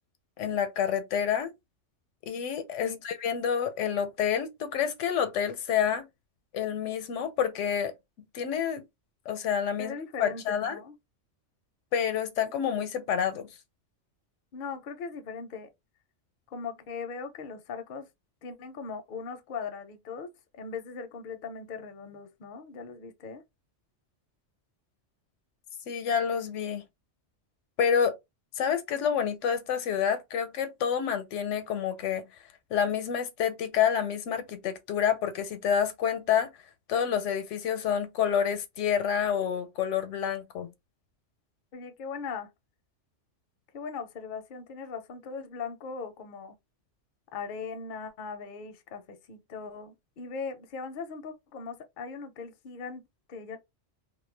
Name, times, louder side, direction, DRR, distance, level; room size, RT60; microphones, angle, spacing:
voice 1, 0.4-1.5 2.2-6.1 6.5-8.8 9.3-10.8 11.9-13.5 25.9-26.9 27.8-28.1 28.6-32.3 32.7-36.5 36.9-40.7, left 8 dB, 85° left, 0.9 m, -28 dB
voice 2, 9.8-11.0 14.5-15.7 16.5-18.1 18.4-23.4 41.7-42.5 43.7-46.5 47.3-53.6, left 5 dB, 55° left, 0.6 m, -39 dB
2.3 x 2.1 x 3.1 m
omnidirectional pair, 1.2 m